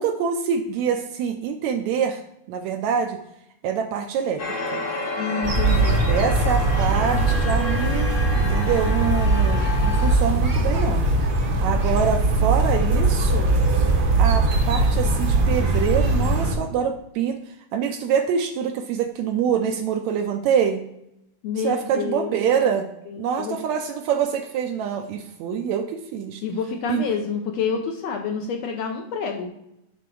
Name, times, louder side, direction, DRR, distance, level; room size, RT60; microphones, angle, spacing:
voice 1, 0.0-2.2 2.5-3.2 3.6-4.8 6.0-11.1 11.6-13.5 14.0-17.4 17.7-20.8 21.6-22.9 23.2-26.4 26.9-27.0, right 7 dB, 75° right, 6 dB, 1.7 m, -25 dB
sound 1, 4.4-10.2, left 2 dB, 45° left, 1.2 m, -30 dB
voice 2, 5.2-6.0 21.4-22.4 23.1-23.6 26.4-29.5, left 5 dB, 70° left, 3 dB, 1.7 m, -28 dB
sound 2, 5.4-16.6, right 2 dB, 55° right, 1.1 m, -20 dB
8.5 x 3.6 x 6.0 m, 0.79 s
omnidirectional pair, 3.6 m